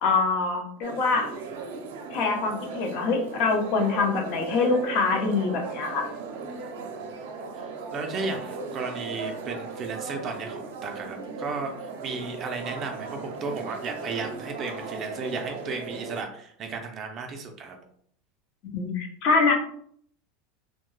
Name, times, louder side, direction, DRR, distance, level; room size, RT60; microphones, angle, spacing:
voice 1, 0.0-1.3 2.1-6.1 18.7-19.5, left 4 dB, 45° left, 2 dB, 0.7 m, -24 dB
sound 1, 0.8-16.2, right 4 dB, 85° right, 0.5 m, -37 dB
voice 2, 7.9-17.8, right 4 dB, 30° right, 4 dB, 0.4 m, -34 dB
2.7 x 2.1 x 3.1 m, 0.62 s
supercardioid pair, 155°, 0 cm